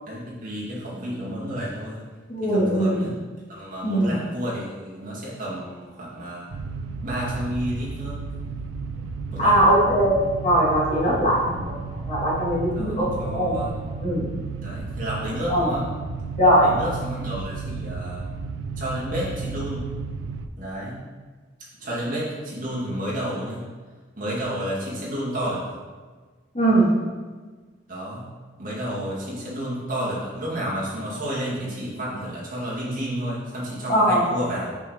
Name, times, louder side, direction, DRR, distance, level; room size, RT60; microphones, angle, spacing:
voice 1, 0.1-2.0 2.4-3.2 3.5-6.5 7.0-8.2 9.3-9.6 12.7-13.7 14.6-15.8 16.6-18.2 18.8-19.8 20.5-21.0 21.8-23.6 24.2-25.8 27.9-28.3 28.6-34.8, equal, 45° right, -6 dB, 2.4 m, -31 dB
voice 2, 2.3-3.1 3.8-4.1 9.4-11.7 12.0-13.6 14.0-14.3 15.5-15.7 16.4-16.7 26.5-26.9 33.9-34.3, right 1 dB, 35° left, -6 dB, 2.4 m, -20 dB
sound 1, 6.5-20.5, right 4 dB, 80° right, 0.5 m, -33 dB
6.1 x 6.1 x 4.7 m, 1.4 s
head